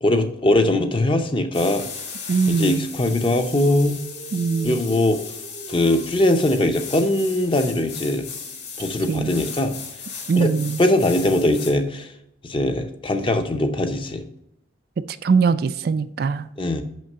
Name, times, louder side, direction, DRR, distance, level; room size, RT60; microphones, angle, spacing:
voice 1, 0.0-1.8 2.5-4.0 4.6-5.2 5.7-8.3 8.8-9.8 10.4-10.5 10.8-12.1 12.4-14.2 16.6-16.8, left 1 dB, 25° left, 0.7 m, -21 dB
sound 1, 1.5-11.7, left 4 dB, 55° left, 2.3 m, -36 dB
voice 2, 2.3-2.9 4.3-4.8 9.1-9.3 10.3-10.8 15.2-16.5, right 5 dB, 50° right, 0.3 m, -21 dB
6.3 x 5.7 x 5.4 m
head